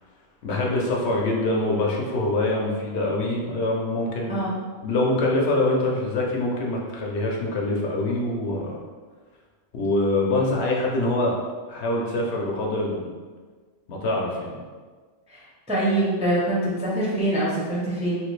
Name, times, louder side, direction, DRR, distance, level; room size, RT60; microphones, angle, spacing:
voice 1, 0.4-4.4 4.8-8.8 9.7-11.4 11.7-13.1 13.9-14.6, left 2 dB, 70° left, -2 dB, 0.9 m, -24 dB
voice 2, 15.3-18.2, right 1 dB, 10° right, -6 dB, 0.4 m, -24 dB
3.3 x 2.4 x 3.1 m, 1.5 s
omnidirectional pair, 1.2 m